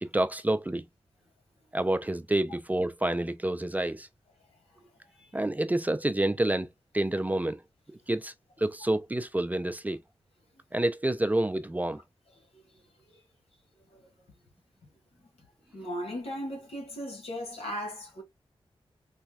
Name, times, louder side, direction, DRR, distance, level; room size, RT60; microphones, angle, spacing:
voice 1, 0.0-0.9 1.7-4.1 5.3-6.7 6.9-7.6 8.1-10.0 10.7-12.0, right 1 dB, 15° right, 0.4 m, -28 dB
voice 2, 15.7-18.2, equal, 80° left, 1.5 m, -37 dB
4.1 x 2.2 x 2.2 m
cardioid pair, 75°, 10 cm